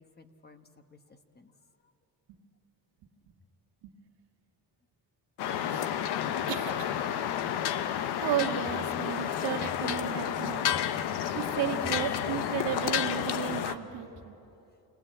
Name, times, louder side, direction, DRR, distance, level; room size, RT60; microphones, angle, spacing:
voice 1, 0.0-1.5 10.7-11.3, left 3 dB, 25° left, 8 dB, 1.1 m, -53 dB
sound 1, 5.4-13.7, left 10 dB, 85° left, 1.0 m, -31 dB
voice 2, 6.5-7.0 8.2-10.6 11.2-14.4, right 10 dB, 90° right, 3 dB, 1.8 m, -34 dB
28.0 x 19.5 x 8.7 m, 2.9 s
cardioid pair, 140°, 39 cm